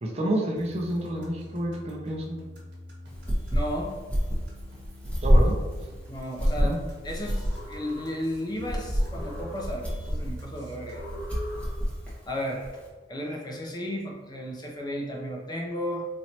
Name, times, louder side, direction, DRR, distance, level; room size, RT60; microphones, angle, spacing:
voice 1, 0.0-2.4 5.2-5.6 6.6-6.8, right 1 dB, 35° right, 0 dB, 0.6 m, -29 dB
sound 1, 0.6-11.2, equal, 75° right, 1.1 m, -46 dB
sound 2, 3.1-12.9, equal, 5° left, 1.2 m, -27 dB
voice 2, 3.5-3.9 6.1-11.1 12.3-12.7 13.1-16.0, equal, 25° left, 0 dB, 0.5 m, -34 dB
sound 3, 7.1-8.5 8.9-10.1 10.8-12.1, left 1 dB, 80° left, 1.2 m, -43 dB
4.2 x 3.0 x 2.8 m, 1.4 s
head